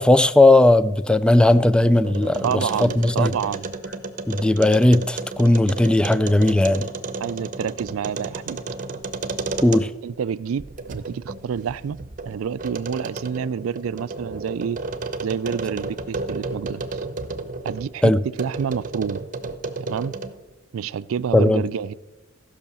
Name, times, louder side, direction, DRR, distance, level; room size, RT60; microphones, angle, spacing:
voice 1, 0.0-3.3 4.3-6.9 9.6-9.9 18.0-18.2 21.3-21.6, left 1 dB, 5° left, 0.3 m, -17 dB
sound 1, 1.3-10.1 10.6-17.9 18.4-20.5, right 3 dB, 40° right, 0.8 m, -32 dB
voice 2, 2.4-3.7 7.2-8.6 10.0-10.6 10.9-12.0 12.3-14.8 15.2-16.9 17.6-18.1 18.4-19.2 19.8-20.1 20.7-21.9, right 7 dB, 80° right, 0.4 m, -28 dB
15.0 x 5.6 x 6.9 m
head